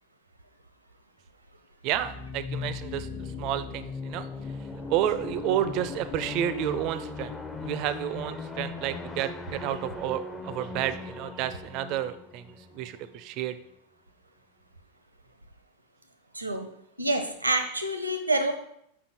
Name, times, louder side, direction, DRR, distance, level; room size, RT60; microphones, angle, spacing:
voice 1, 1.8-4.3 4.9-7.3 7.6-12.4 12.7-13.6, right 11 dB, 40° right, 13 dB, 0.5 m, -30 dB
sound 1, 1.9-13.5, left 4 dB, 15° left, 0.6 m, -38 dB
voice 2, 16.3-16.7 17.0-18.5, right 1 dB, 80° right, 7 dB, 0.8 m, -27 dB
6.6 x 5.5 x 4.3 m, 0.75 s
figure-of-eight pair, 90°, 0 cm